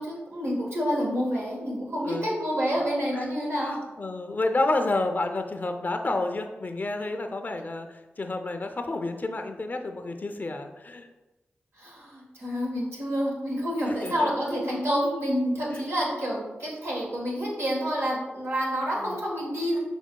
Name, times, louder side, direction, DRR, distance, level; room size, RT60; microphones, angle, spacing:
voice 1, 0.0-3.8 11.8-19.8, equal, 75° right, -3 dB, 1.3 m, -28 dB
voice 2, 3.6-7.9 8.2-11.1 13.9-14.3 15.7-15.8 19.0-19.2, left 2 dB, 40° left, 6 dB, 0.5 m, -30 dB
6.0 x 3.5 x 2.2 m, 1.1 s
cardioid pair, 55°, 4 cm